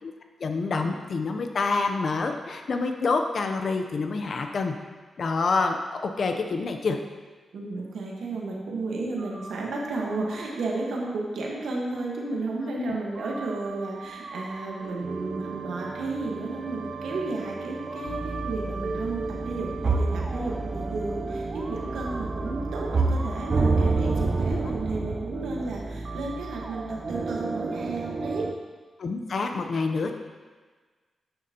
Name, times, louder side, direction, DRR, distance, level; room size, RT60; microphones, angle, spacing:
voice 1, 0.4-4.7 5.2-7.0 12.8-13.0 24.5-24.6 29.0-30.2, left 4 dB, 55° left, 5 dB, 0.7 m, -27 dB
voice 2, 7.5-28.5, right 3 dB, 85° right, -2 dB, 1.3 m, -33 dB
sound 1, 9.2-10.8 11.0-11.1 11.9-12.0 13.1-28.5, right 3 dB, 40° right, 0.5 m, -30 dB
8.8 x 6.6 x 2.9 m, 1.4 s
cardioid pair, 95°, 0 cm